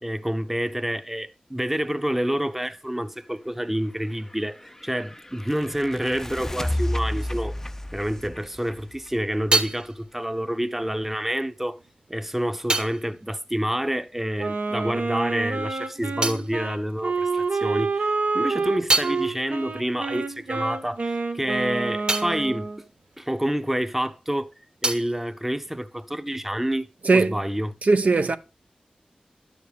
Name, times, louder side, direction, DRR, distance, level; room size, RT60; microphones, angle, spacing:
voice 1, 0.0-7.5 7.9-11.8 12.1-22.7 23.2-24.5 24.8-26.9 27.1-27.7, equal, 10° right, 0.7 m, -28 dB
sound 1, 4.0-9.8, left 1 dB, 15° left, 0.4 m, -32 dB
sound 2, 8.8-14.7 14.9-17.6 18.0-24.1 24.3-26.4, right 2 dB, 35° right, 1.2 m, -32 dB
Wind instrument woodwind instrument, 14.4-22.8, right 4 dB, 85° right, 1.2 m, -28 dB
voice 2, 27.0-27.4 27.8-28.4, right 3 dB, 65° right, 0.6 m, -19 dB
11.5 x 7.2 x 3.4 m
wide cardioid pair, 55°, 3 cm